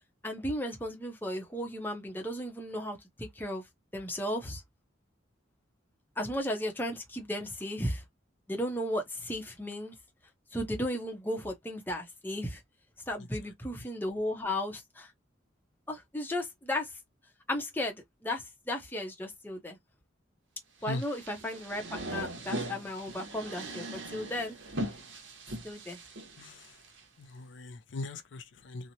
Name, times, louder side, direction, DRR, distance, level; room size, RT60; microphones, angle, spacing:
voice 1, 0.2-3.6 3.9-4.6 6.2-8.0 8.5-9.9 10.5-12.6 13.1-15.1 15.9-16.9 17.5-19.8 20.8-24.6 25.6-26.0, left 1 dB, 10° left, 0.6 m, -35 dB
sound 1, 20.9-27.0, right 1 dB, 75° right, 0.9 m, -40 dB
voice 2, 26.4-26.7 27.2-28.9, left 2 dB, 65° left, 0.4 m, -40 dB
2.9 x 2.1 x 2.6 m
head